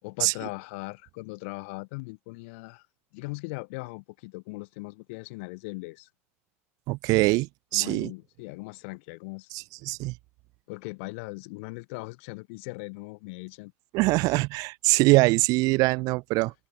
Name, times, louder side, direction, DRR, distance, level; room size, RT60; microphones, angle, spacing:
voice 1, 0.0-2.9 3.1-6.1 7.7-9.5 10.7-13.7 14.2-14.3, left 28 dB, 60° left, 7.5 m, -39 dB
voice 2, 6.9-8.1 9.5-10.1 13.9-16.5, right 23 dB, 55° right, 2.2 m, -23 dB
figure-of-eight pair, 75°, 7 cm